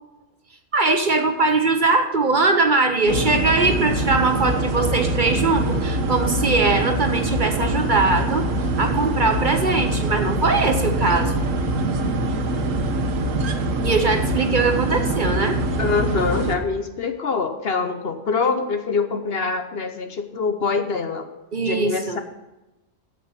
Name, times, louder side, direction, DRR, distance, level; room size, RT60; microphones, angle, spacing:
voice 1, 0.7-8.5 8.8-11.3 13.8-15.6 21.5-22.2, right 3 dB, 45° right, 6 dB, 0.9 m, -21 dB
sound 1, 3.1-16.6, right 1 dB, 85° right, 1.4 m, -24 dB
voice 2, 15.8-21.3 21.6-22.2, left 4 dB, 55° left, 7 dB, 1.0 m, -24 dB
8.9 x 7.9 x 5.6 m, 1.0 s
omnidirectional pair, 1.3 m